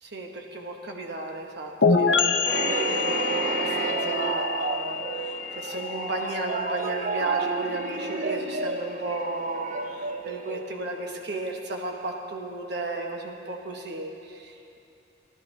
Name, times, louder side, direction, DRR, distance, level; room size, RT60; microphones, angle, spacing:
voice 1, 0.0-14.8, right 2 dB, 60° right, 2 dB, 1.1 m, -34 dB
sound 1, 1.8-9.4, left 5 dB, 75° left, 0.6 m, -28 dB
sound 2, 2.5-11.2, right 4 dB, 45° right, 0.4 m, -31 dB
14.5 x 11.5 x 3.2 m, 2.6 s
head